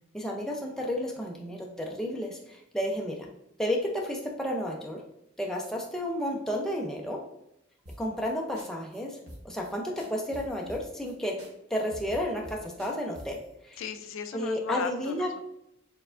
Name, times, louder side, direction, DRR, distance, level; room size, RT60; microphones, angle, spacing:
voice 1, 0.1-3.3 3.6-5.0 5.4-7.2 8.0-9.2 9.4-11.3 11.7-13.4 13.7-13.8 14.3-15.3, left 1 dB, ahead, -1 dB, 0.4 m, -32 dB
sound 1, 7.9-8.3 8.6-8.7 8.9-9.0 9.3-9.7 10.0-11.1 11.4-11.5 11.7-13.4, equal, 50° right, 1.0 m, -46 dB
voice 2, 13.8-15.4, left 6 dB, 80° left, 9 dB, 0.3 m, -36 dB
4.4 x 3.3 x 2.4 m, 0.81 s
head